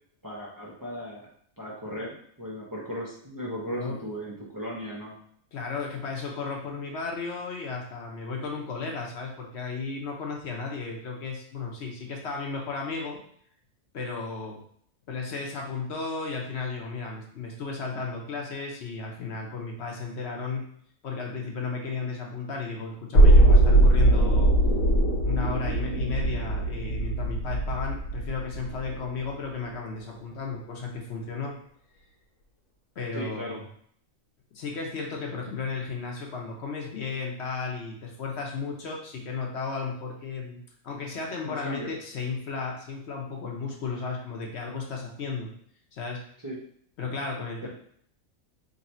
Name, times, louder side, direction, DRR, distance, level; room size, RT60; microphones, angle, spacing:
voice 1, 0.2-1.3 1.6-5.1 33.1-33.6 41.4-41.9 46.4-46.6 47.6-47.7, equal, 25° right, -5 dB, 0.4 m, -36 dB
voice 2, 5.5-13.2 13.9-14.6 15.1-20.6 21.0-24.5 25.3-31.5 33.0-33.6 34.5-45.5 45.9-46.2 47.0-47.7, left 4 dB, 60° left, 0 dB, 1.0 m, -34 dB
sound 1, 23.1-29.1 29.4-29.5, right 1 dB, 85° left, 1.3 m, -20 dB
3.1 x 2.7 x 4.2 m, 0.64 s
omnidirectional pair, 1.4 m